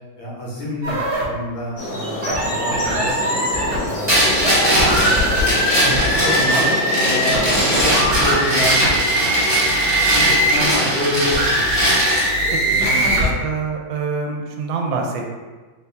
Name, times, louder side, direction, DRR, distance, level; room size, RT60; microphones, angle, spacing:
voice 1, 0.2-3.4 3.7-4.5 4.9-5.9 6.2-9.7 10.1-13.3, left 1 dB, 90° left, -5 dB, 1.9 m, -28 dB
sound 1, 0.8-1.2 2.2-3.8 4.3-10.8 11.3-13.3, right 1 dB, 55° right, 0.8 m, -21 dB
sound 2, 1.8-7.9, left 1 dB, 65° left, 1.5 m, -26 dB
sound 3, 4.1-12.3, equal, 10° right, 1.2 m, -20 dB
voice 2, 5.8-6.2 13.0-15.4, right 4 dB, 80° right, 2 dB, 1.3 m, -26 dB
4.0 x 2.6 x 3.3 m, 1.3 s
omnidirectional pair, 2.1 m